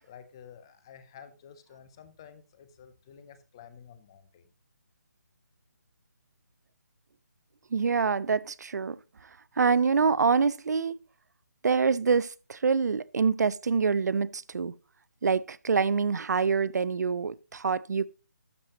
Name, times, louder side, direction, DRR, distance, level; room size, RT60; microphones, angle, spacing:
voice 1, 0.0-4.4, left 8 dB, 15° left, 0.5 m, -51 dB
voice 2, 7.7-9.0 9.6-10.9 11.6-14.7 15.2-18.1, right 5 dB, 75° right, 0.5 m, -26 dB
12.0 x 6.4 x 2.9 m
hypercardioid pair, 170°, 9 cm